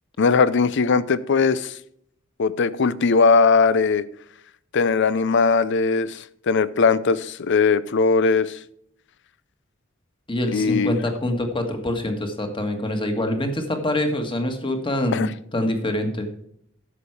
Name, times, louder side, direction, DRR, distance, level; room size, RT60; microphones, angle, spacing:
voice 1, 0.2-1.8 2.4-4.0 4.7-8.6 10.5-10.9 15.1-15.3, left 4 dB, 60° left, 17 dB, 0.6 m, -19 dB
voice 2, 10.3-15.3 15.5-16.3, left 1 dB, 25° left, 5 dB, 1.7 m, -25 dB
11.0 x 7.2 x 4.8 m, 0.70 s
head